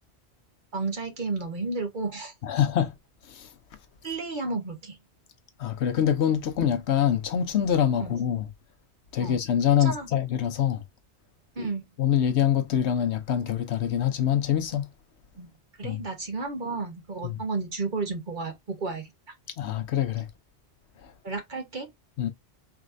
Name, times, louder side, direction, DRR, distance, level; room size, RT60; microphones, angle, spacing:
voice 1, 0.7-2.3 4.0-5.0 8.0-8.2 9.2-9.4 9.7-10.1 11.5-11.9 15.4-15.5 15.8-19.1 21.2-21.9, right 3 dB, 45° right, 1.3 m, -32 dB
voice 2, 2.4-2.9 3.3-3.5 5.6-8.5 9.1-10.8 12.0-14.9 15.8-16.0 17.2-17.4 19.6-20.3 22.2-22.3, left 9 dB, 75° left, 1.0 m, -25 dB
4.8 x 3.2 x 2.6 m
omnidirectional pair, 1.2 m